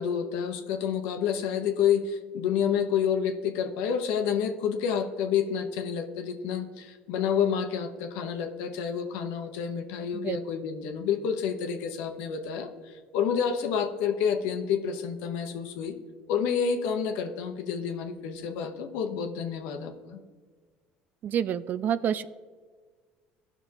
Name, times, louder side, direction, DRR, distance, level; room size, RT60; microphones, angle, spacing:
voice 1, 0.0-16.0 16.3-20.2, left 7 dB, 80° left, 6 dB, 0.9 m, -29 dB
voice 2, 21.2-22.2, right 9 dB, 50° right, 15 dB, 0.4 m, -28 dB
16.0 x 6.0 x 2.8 m, 1.5 s
supercardioid pair, 95°, 4 cm